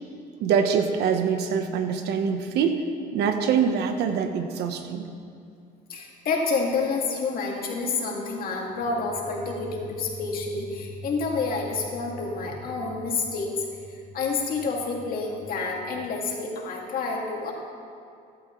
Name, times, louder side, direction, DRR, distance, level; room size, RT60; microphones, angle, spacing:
voice 1, 0.4-2.8 3.1-5.1, right 6 dB, 80° right, 7 dB, 1.1 m, -24 dB
voice 2, 5.9-17.5, left 4 dB, 60° left, -1 dB, 2.3 m, -29 dB
15.5 x 12.0 x 3.2 m, 2.4 s
cardioid pair, 110°, 17 cm